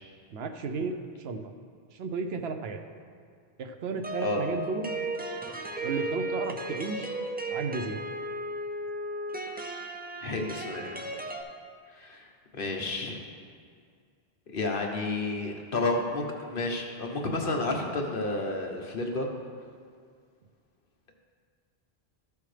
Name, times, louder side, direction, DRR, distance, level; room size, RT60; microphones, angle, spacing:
voice 1, 0.3-1.4 1.9-2.8 3.6-4.9 5.8-7.1 7.5-8.0, right 4 dB, 75° right, 6 dB, 0.9 m, -33 dB
sound 1, 4.0-11.4, right 1 dB, 15° right, 0.4 m, -35 dB
voice 2, 10.2-11.0 11.9-13.2 14.5-19.3, left 2 dB, 60° left, 1 dB, 1.2 m, -31 dB
13.5 x 6.9 x 3.3 m, 2.1 s
omnidirectional pair, 1.1 m